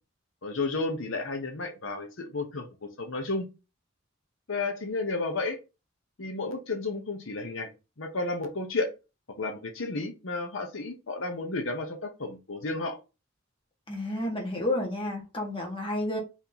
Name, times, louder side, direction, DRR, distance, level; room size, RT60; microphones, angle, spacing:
voice 1, 0.4-2.7 3.0-3.5 4.5-5.6 6.2-7.7 8.0-8.9 9.4-13.0, left 3 dB, 75° left, 0.9 m, -32 dB
voice 2, 13.9-16.2, left 1 dB, 25° left, 1.4 m, -31 dB
4.1 x 2.9 x 4.0 m
head